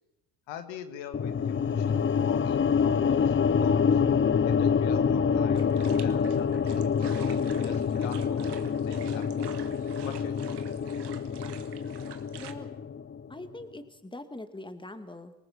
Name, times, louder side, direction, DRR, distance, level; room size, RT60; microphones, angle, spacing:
voice 1, 0.5-4.0 4.5-9.6 10.0-10.6, left 9 dB, 80° left, 8 dB, 1.9 m, -44 dB
sound 1, 1.1-13.4, left 6 dB, 25° left, 0.7 m, -26 dB
sound 2, 5.5-12.5, right 10 dB, 60° right, 2.0 m, -48 dB
voice 2, 12.4-12.7 13.3-15.3, left 2 dB, 10° left, 9 dB, 2.3 m, -42 dB
25.5 x 19.0 x 6.0 m, 0.99 s
supercardioid pair, 65°, 45 cm